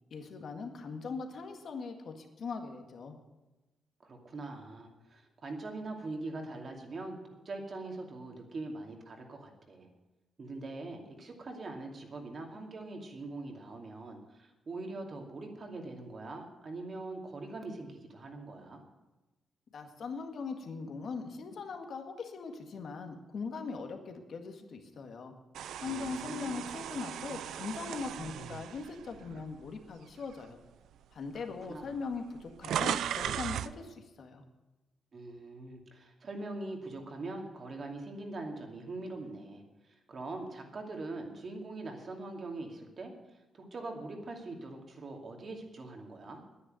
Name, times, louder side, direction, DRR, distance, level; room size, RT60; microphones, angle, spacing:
voice 1, 0.1-3.2 19.7-25.3 25.8-30.6 31.1-34.4, left 4 dB, 60° left, 5 dB, 1.9 m, -40 dB
voice 2, 4.0-7.2 7.4-9.9 10.4-18.8 25.8-26.6 31.3-32.0 35.1-43.1 43.5-46.4, right 2 dB, 45° right, 2 dB, 2.5 m, -42 dB
sound 1, 25.5-29.8 30.3-30.5 31.4-31.5 31.7-33.8, right 10 dB, 90° right, 0.4 m, -37 dB
10.5 x 9.8 x 9.0 m, 1.1 s
cardioid pair, 100°, 0 cm